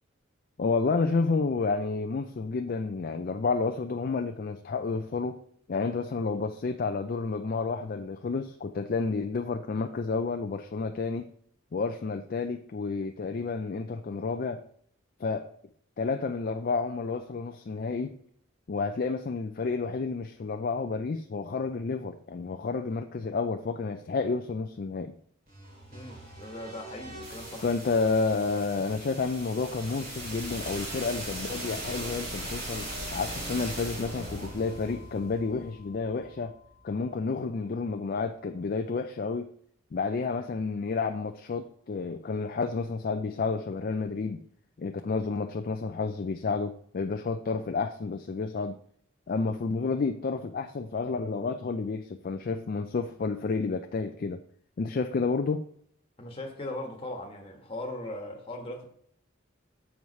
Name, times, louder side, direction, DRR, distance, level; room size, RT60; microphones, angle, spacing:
voice 1, 0.6-5.4 5.7-11.3 11.7-14.6 15.2-15.5 16.0-18.2 18.7-25.2 27.6-36.5 36.8-39.5 39.9-44.4 44.8-48.8 49.3-54.4 54.8-55.6, left 4 dB, 45° left, 0.4 m, -30 dB
sound 1, 25.5-37.3, right 1 dB, 45° right, 2.4 m, -40 dB
voice 2, 25.9-27.7 56.2-58.9, left 1 dB, 25° left, 1.3 m, -39 dB
7.1 x 4.7 x 5.3 m
head